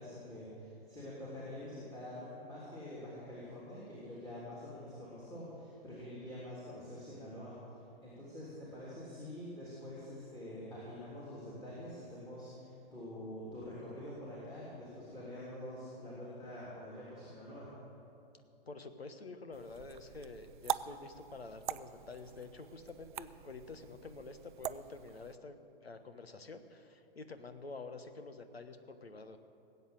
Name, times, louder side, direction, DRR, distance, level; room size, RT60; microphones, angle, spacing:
voice 1, 0.0-7.6 8.0-17.7, left 1 dB, 10° left, -8 dB, 3.2 m, -46 dB
voice 2, 18.7-25.6 25.8-29.4, left 3 dB, 80° left, 9 dB, 1.2 m, -48 dB
sound 1, 19.5-25.4, right 10 dB, 55° right, 0.5 m, -43 dB
19.0 x 8.2 x 7.7 m, 2.6 s
figure-of-eight pair, 110°, 30 cm